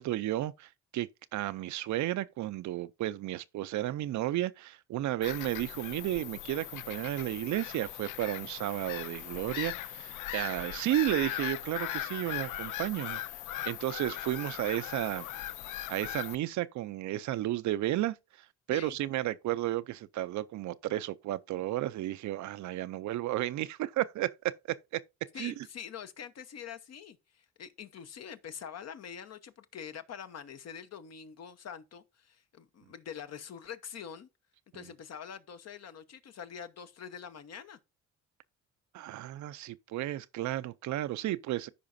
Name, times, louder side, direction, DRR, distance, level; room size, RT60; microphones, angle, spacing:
voice 1, 0.0-13.2 13.6-15.3 15.9-25.0 25.4-25.5 34.7-34.8 38.9-41.7, right 14 dB, 70° right, 0.5 m, -33 dB
Bird vocalization bird call bird song / Gull seagull, 5.2-16.3, left 14 dB, 80° left, 0.5 m, -39 dB
voice 2, 25.3-34.3 34.7-37.8, left 8 dB, 55° left, 1.0 m, -45 dB
13.5 x 4.9 x 2.6 m
cardioid pair, 90°, 30 cm